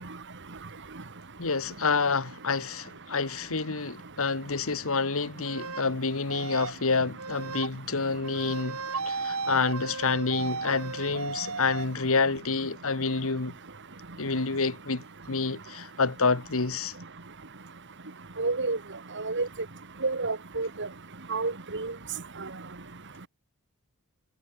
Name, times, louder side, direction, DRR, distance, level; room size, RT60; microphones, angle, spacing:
voice 1, 1.4-8.8 9.1-13.5 14.2-16.9, left 4 dB, 70° left, 1.6 m, -28 dB
sound 1, 5.4-5.9 6.3-6.8 7.2-7.7 8.2-11.9, right 4 dB, 80° right, 5.0 m, -35 dB
voice 2, 18.4-18.8 19.2-19.5 20.0-20.9 21.3-21.9, right 3 dB, 55° right, 2.3 m, -29 dB
head